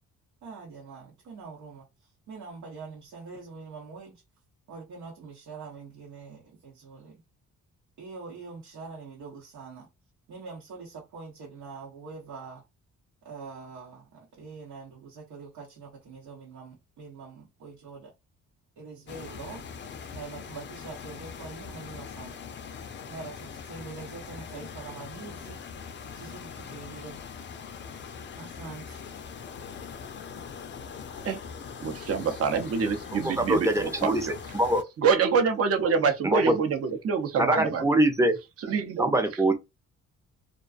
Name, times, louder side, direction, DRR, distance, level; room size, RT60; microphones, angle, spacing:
voice 1, 0.4-4.2 4.7-7.2 8.0-9.9 10.3-12.6 13.2-18.1 18.8-19.6 20.1-22.4 23.1-25.6 26.1-27.2 28.4-29.0, right 4 dB, 85° right, 0.9 m, -44 dB
sound 1, 19.1-34.8, left 6 dB, 40° left, 0.4 m, -41 dB
voice 2, 31.8-34.1 35.0-37.8 38.6-39.1, right 5 dB, 50° right, 0.7 m, -26 dB
voice 3, 33.1-34.3 34.5-34.8 36.2-36.6 37.4-38.4 39.0-39.5, right 1 dB, 10° right, 0.5 m, -23 dB
2.4 x 2.2 x 2.4 m
cardioid pair, 90°, 30 cm